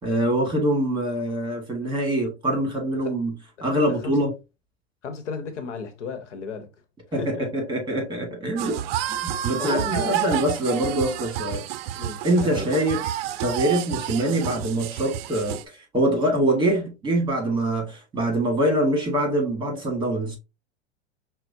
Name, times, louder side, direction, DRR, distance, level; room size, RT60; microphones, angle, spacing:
voice 1, 0.0-3.3 3.6-4.3 7.1-7.2 7.5-8.8 9.2-11.6 12.2-13.0 13.4-15.6 15.9-20.4, right 1 dB, 15° right, 1.5 m, -24 dB
voice 2, 3.8-4.2 5.0-6.7 7.2-7.5 9.6-10.1 11.9-12.7, left 5 dB, 80° left, 0.9 m, -33 dB
sound 1, 8.6-15.6, right 12 dB, 60° right, 0.4 m, -30 dB
5.7 x 2.1 x 2.6 m
hypercardioid pair, 110°, 35 cm